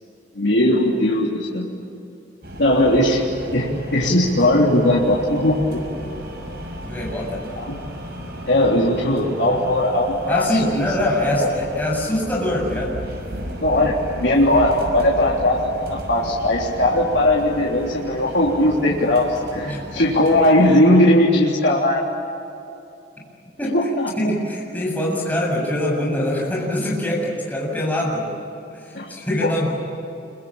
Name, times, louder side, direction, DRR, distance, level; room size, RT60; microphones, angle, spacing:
voice 1, 0.3-1.7 2.6-3.2 3.5-5.9 7.5-7.7 8.5-10.9 11.4-11.5 13.6-22.1 23.7-24.1 28.9-29.1 29.4-29.5, left 1 dB, 70° left, -4 dB, 3.5 m, -18 dB
sound 1, 2.4-20.8, equal, 60° right, 6.1 m, -35 dB
voice 2, 6.8-7.4 10.3-12.9 19.6-19.8 23.6-23.8 24.2-28.3 28.7-29.7, left 1 dB, 10° left, -4 dB, 7.5 m, -23 dB
26.5 x 24.5 x 8.9 m, 2.7 s
head